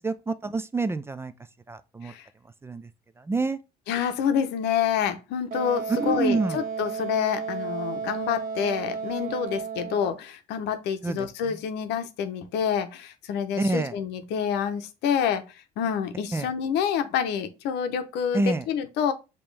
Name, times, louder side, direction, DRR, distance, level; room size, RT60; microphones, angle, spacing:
voice 1, 0.0-1.3 1.7-2.1 2.6-2.8 3.3-3.6 6.0-6.6 11.0-11.3 13.6-13.9 16.3-16.5 18.3-18.6, right 3 dB, 15° right, 0.3 m, -27 dB
voice 2, 3.9-19.1, left 8 dB, 85° left, 0.8 m, -28 dB
Wind instrument woodwind instrument, 5.5-10.2, right 5 dB, 55° right, 0.7 m, -33 dB
5.2 x 2.9 x 3.3 m
cardioid pair, 110°, 17 cm